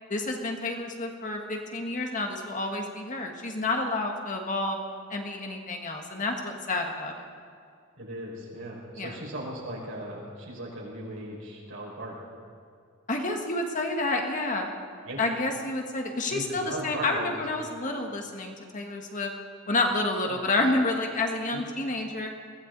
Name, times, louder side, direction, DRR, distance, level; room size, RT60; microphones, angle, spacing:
voice 1, 0.1-4.8 5.1-7.1 9.0-9.1 13.1-14.7 15.2-19.3 19.7-22.3, left 2 dB, 40° left, 2 dB, 1.7 m, -29 dB
voice 2, 8.0-12.3 15.0-15.2 16.3-17.3 20.2-20.4 21.5-21.6, right 1 dB, 70° right, -3 dB, 5.5 m, -38 dB
21.5 x 16.5 x 4.1 m, 2.3 s
head